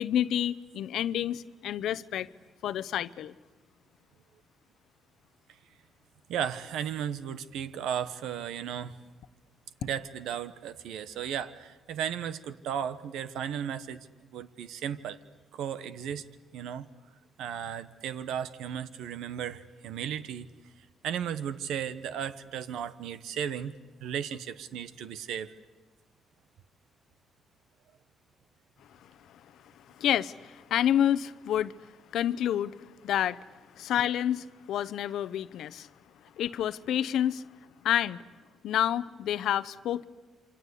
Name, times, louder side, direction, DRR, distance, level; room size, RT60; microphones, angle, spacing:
voice 1, 0.0-2.3 2.6-3.3 29.0-33.4 33.7-35.9 36.4-37.5 37.8-38.2 38.6-40.0, left 10 dB, 75° left, 0.8 m, -29 dB
voice 2, 6.3-9.0 9.8-14.1 14.3-15.2 15.5-16.2 16.5-16.9 17.4-20.5 21.0-23.7 24.0-25.5, right 9 dB, 85° right, 1.2 m, -35 dB
27.5 x 26.0 x 8.4 m
cardioid pair, 90°, 0 cm